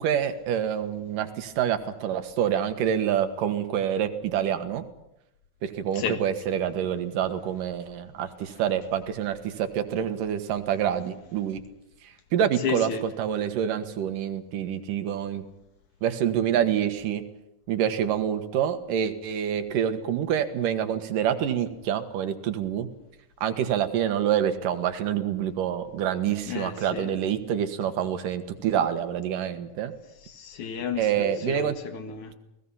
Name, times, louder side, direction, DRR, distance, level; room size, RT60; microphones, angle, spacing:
voice 1, 0.0-4.8 5.6-11.6 12.3-15.4 16.0-17.2 17.7-22.9 23.4-29.9 31.0-31.8, right 9 dB, 90° right, 3.1 m, -27 dB
voice 2, 12.6-13.0 26.5-27.1 30.3-32.3, left 6 dB, 65° left, 3.1 m, -32 dB
29.5 x 19.0 x 5.7 m
omnidirectional pair, 3.7 m